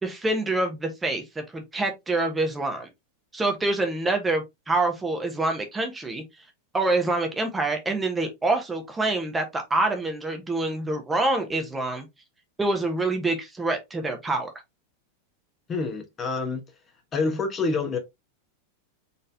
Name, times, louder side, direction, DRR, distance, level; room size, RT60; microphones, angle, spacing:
voice 1, 0.0-2.9 3.3-6.2 6.7-12.0 12.6-14.5, right 2 dB, 10° right, 1.1 m, -26 dB
voice 2, 15.7-16.6 17.1-18.0, left 3 dB, 25° left, 1.1 m, -27 dB
4.2 x 3.9 x 2.7 m
figure-of-eight pair, 90°, 0 cm